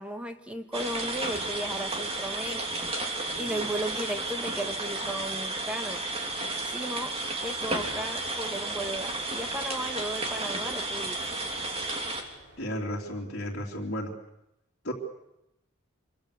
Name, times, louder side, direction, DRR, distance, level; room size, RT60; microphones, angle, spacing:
voice 1, 0.0-2.9 3.4-6.0 6.6-7.1 7.4-11.4, right 1 dB, 5° right, 6 dB, 1.5 m, -35 dB
sound 1, 0.7-12.2, right 2 dB, 30° right, 3.0 m, -32 dB
sound 2, 7.5-12.7, right 1 dB, 80° right, 6.5 m, -54 dB
voice 2, 12.6-14.1 14.8-14.9, equal, 55° left, -5 dB, 3.3 m, -34 dB
26.0 x 23.5 x 6.9 m, 0.84 s
head